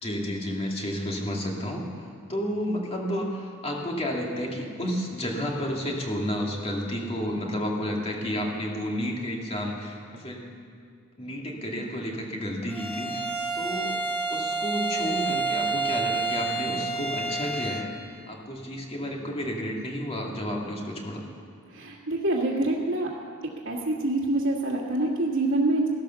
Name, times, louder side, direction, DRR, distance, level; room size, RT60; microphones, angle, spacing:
voice 1, 0.0-10.4 11.2-14.0 14.3-21.2, equal, 30° left, -1 dB, 2.1 m, -31 dB
Bowed string instrument, 12.7-17.9, right 3 dB, 10° left, 1.4 m, -29 dB
voice 2, 21.7-23.1 23.7-25.9, right 2 dB, 65° right, -5 dB, 1.8 m, -26 dB
15.5 x 11.5 x 6.9 m, 2.3 s
head